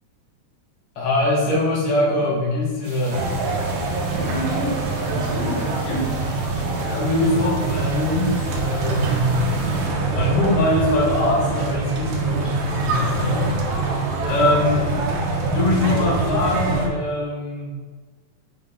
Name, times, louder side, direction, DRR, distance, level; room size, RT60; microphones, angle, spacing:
voice 1, 1.0-3.3 6.8-9.4 10.1-13.5 14.2-14.9 15.4-17.7, left 1 dB, 50° left, -6 dB, 2.5 m, -22 dB
sound 1, 2.8-9.9, right 2 dB, 60° right, 2.6 m, -42 dB
sound 2, 3.1-16.9, right 3 dB, 80° right, 2.3 m, -24 dB
voice 2, 4.1-6.2 14.6-14.7, equal, 80° left, -3 dB, 2.2 m, -30 dB
6.8 x 5.0 x 3.7 m, 1.4 s
omnidirectional pair, 3.3 m